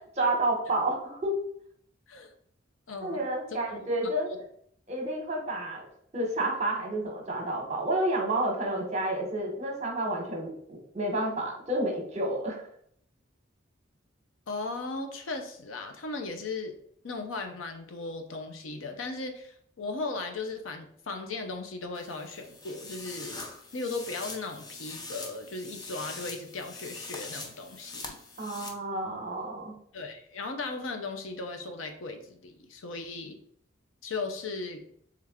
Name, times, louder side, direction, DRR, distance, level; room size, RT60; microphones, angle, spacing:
voice 1, 0.2-1.4 3.0-4.3 4.9-5.8 6.1-10.5 10.9-12.7 28.4-29.7, right 1 dB, 35° right, 1 dB, 1.0 m, -30 dB
voice 2, 2.9-3.3 4.3-4.4 14.5-16.7 17.0-23.4 23.7-28.2 29.9-33.4 34.0-34.8, left 3 dB, 90° left, 5 dB, 0.6 m, -37 dB
sound 1, 21.9-28.7, left 3 dB, 20° left, 0.5 m, -43 dB
3.4 x 3.3 x 3.6 m, 0.66 s
head